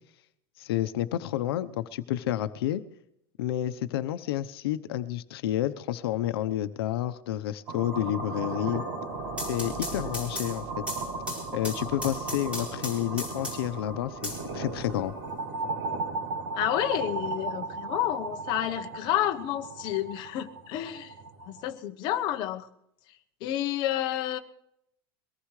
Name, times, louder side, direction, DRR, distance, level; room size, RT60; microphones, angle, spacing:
voice 1, 0.6-2.8 3.4-8.8 9.4-10.8 11.5-15.1, left 13 dB, 85° left, 12 dB, 0.9 m, -30 dB
sound 1, 7.7-21.7, right 3 dB, 70° right, 7.7 m, -36 dB
sound 2, 9.1-13.8 14.2-15.2, left 1 dB, 10° right, 4.5 m, -37 dB
voice 2, 16.5-21.1 21.4-22.7 23.4-24.4, left 12 dB, 35° left, 6 dB, 1.1 m, -30 dB
22.5 x 18.5 x 3.3 m, 0.78 s
supercardioid pair, 170°, 12 cm